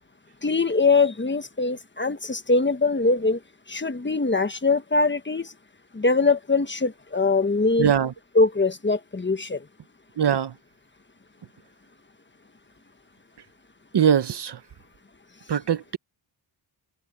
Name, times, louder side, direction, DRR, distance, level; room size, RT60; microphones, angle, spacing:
voice 1, 0.4-3.4 3.7-5.5 5.9-7.9 8.3-9.6, left 3 dB, 25° left, 1.4 m, -22 dB
voice 2, 7.8-8.1 10.2-10.5 13.9-14.6 15.5-16.0, right 8 dB, 55° right, 1.0 m, -21 dB
wide cardioid pair, 105°, 49 cm